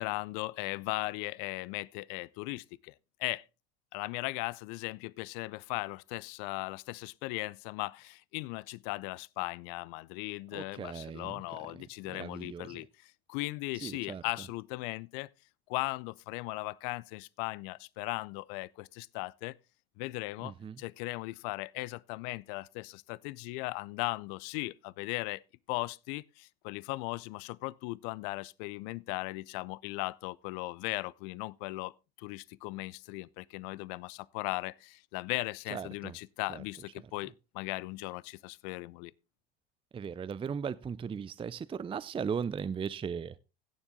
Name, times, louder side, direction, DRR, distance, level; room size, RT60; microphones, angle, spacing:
voice 1, 0.0-2.9 3.2-3.4 3.9-15.3 15.7-19.5 20.0-25.4 25.7-39.1, left 22 dB, 65° left, 0.6 m, -38 dB
voice 2, 10.5-11.4 12.1-12.8 13.7-14.2 20.4-20.8 35.7-36.2 36.5-36.6 39.9-43.4, right 6 dB, 20° right, 0.5 m, -37 dB
16.5 x 7.1 x 3.7 m
hypercardioid pair, 75°, 30 cm